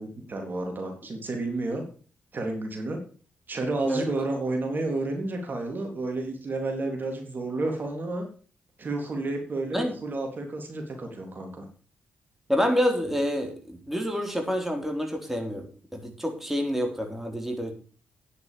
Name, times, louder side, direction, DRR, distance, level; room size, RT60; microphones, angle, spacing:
voice 1, 0.0-1.8 2.3-3.0 3.5-8.3 8.8-11.7, right 2 dB, 45° right, 3 dB, 3.6 m, -31 dB
voice 2, 12.5-15.7 15.9-17.7, equal, 5° right, 3 dB, 3.9 m, -27 dB
10.0 x 8.0 x 7.0 m, 0.40 s
supercardioid pair, 50°, 4 cm